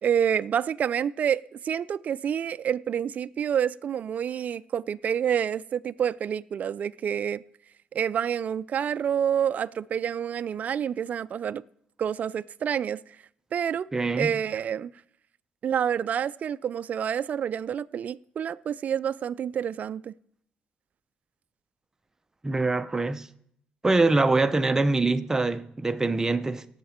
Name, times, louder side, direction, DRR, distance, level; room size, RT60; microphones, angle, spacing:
voice 1, 0.0-7.4 7.9-11.6 12.0-13.0 13.5-13.9 14.2-14.9 15.6-20.1, right 8 dB, 50° right, 0.4 m, -28 dB
voice 2, 13.9-14.3 22.4-23.3 23.8-26.7, right 3 dB, 15° right, 0.7 m, -24 dB
17.5 x 7.5 x 4.4 m
cardioid pair, 85°, 3 cm